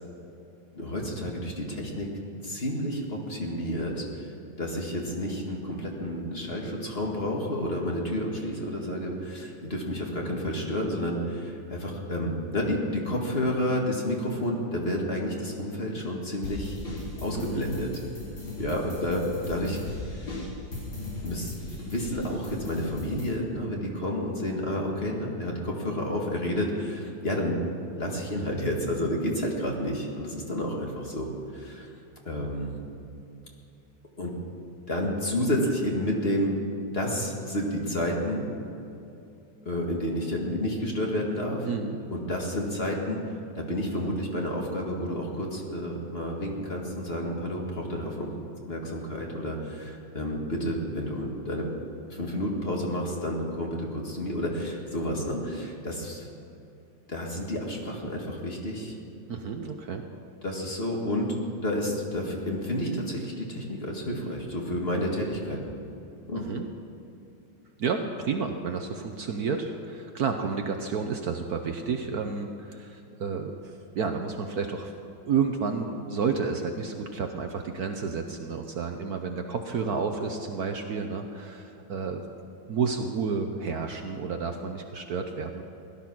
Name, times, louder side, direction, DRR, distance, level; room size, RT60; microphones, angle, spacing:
voice 1, 0.7-2.1 2.4-4.3 4.6-16.8 17.2-17.9 18.6-19.8 20.1-20.4 21.2-27.6 27.9-31.3 31.5-31.9 32.2-32.7 34.2-34.3 34.9-36.5 36.9-38.5 39.7-41.7 42.1-43.2 43.6-48.3 48.6-51.7 52.1-56.3 57.1-59.0 60.4-61.3 61.6-65.6 66.3-66.4, left 1 dB, 30° left, -1 dB, 2.0 m, -30 dB
sound 1, 16.4-23.3, left 2 dB, 80° left, 4.5 m, -38 dB
voice 2, 41.6-42.0 59.3-60.0 66.3-66.7 67.8-74.9 75.3-82.2 82.7-85.8, right 5 dB, 60° right, 5 dB, 1.2 m, -31 dB
17.0 x 12.0 x 6.0 m, 2.8 s
omnidirectional pair, 2.1 m